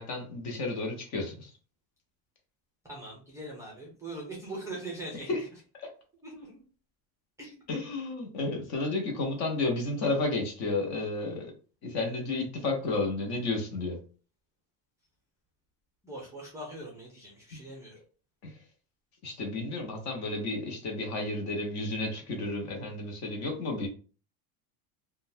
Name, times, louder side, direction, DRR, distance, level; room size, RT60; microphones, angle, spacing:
voice 1, 0.0-1.5 5.3-5.4 5.8-5.9 7.7-11.5 11.8-14.0 18.4-18.5 19.2-23.9, left 2 dB, 40° left, 0.9 m, -32 dB
voice 2, 2.9-5.3 6.2-6.6 7.4-7.6 16.0-17.9, right 1 dB, 5° right, 0.5 m, -41 dB
3.7 x 2.3 x 2.6 m
cardioid pair, 165°, 43 cm